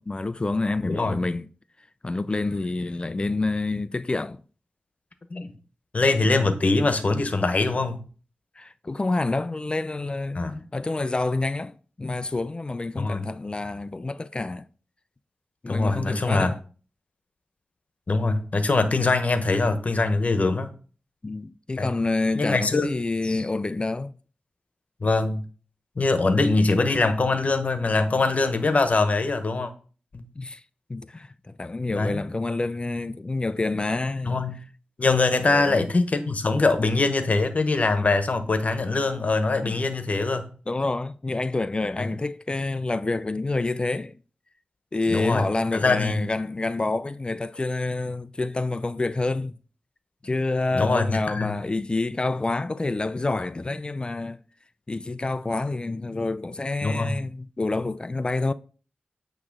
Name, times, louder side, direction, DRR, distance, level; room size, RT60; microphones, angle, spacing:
voice 1, 0.0-1.5 2.0-4.4 8.6-10.4 10.7-11.7 12.0-14.7 15.6-16.6 21.2-24.2 30.4-30.6 30.9-34.4 35.4-35.9 39.6-39.8 40.7-44.1 44.9-49.6 50.2-54.4 54.9-58.5, left 2 dB, 30° left, 0.4 m, -28 dB
voice 2, 5.9-8.0 10.3-10.6 13.0-13.3 15.7-16.5 18.1-20.7 21.8-21.9 22.3-22.9 25.0-25.4 26.0-29.7 30.1-30.2 31.9-32.2 34.2-34.6 35.0-40.5 42.0-42.1 45.1-45.4 45.7-46.2 50.7-51.6 56.8-57.2, left 3 dB, 50° left, 1.0 m, -23 dB
8.6 x 3.1 x 6.0 m
wide cardioid pair, 70°, 3 cm